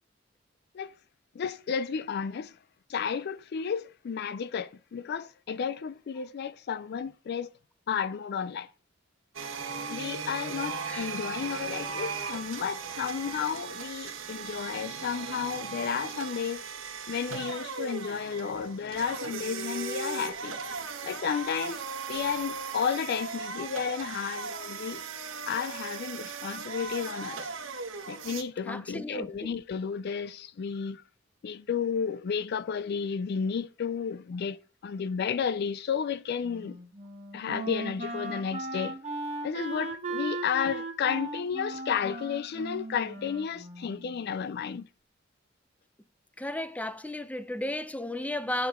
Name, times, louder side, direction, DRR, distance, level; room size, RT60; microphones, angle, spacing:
voice 1, 1.3-2.6 2.9-7.5 7.9-8.7 9.9-16.6 17.1-20.6 21.0-25.0 25.5-27.5 28.1-31.0 31.4-34.6 34.8-36.8 37.3-39.0 39.4-44.9, left 7 dB, 55° left, 0.4 m, -32 dB
sound 1, 9.3-28.4, right 5 dB, 80° right, 1.2 m, -37 dB
voice 2, 28.7-29.5 46.4-48.7, left 1 dB, 10° left, 0.6 m, -34 dB
Wind instrument woodwind instrument, 36.4-44.2, right 2 dB, 35° right, 1.5 m, -37 dB
9.2 x 6.0 x 3.6 m
head